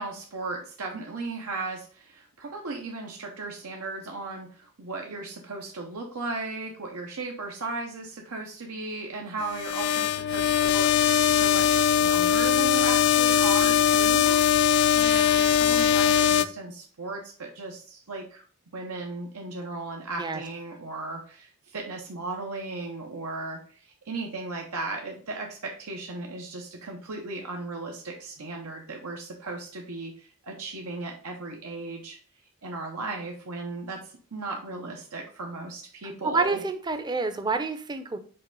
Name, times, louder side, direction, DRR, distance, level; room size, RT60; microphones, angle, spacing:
voice 1, 0.0-18.4 18.7-32.2 32.6-36.6, right 3 dB, 85° right, 1 dB, 0.9 m, -36 dB
sound 1, 9.4-16.4, left 9 dB, 50° left, 0.3 m, -21 dB
voice 2, 13.4-14.0 20.2-20.4 36.2-38.2, right 3 dB, 20° right, 8 dB, 0.5 m, -29 dB
5.7 x 3.3 x 5.2 m, 0.42 s
head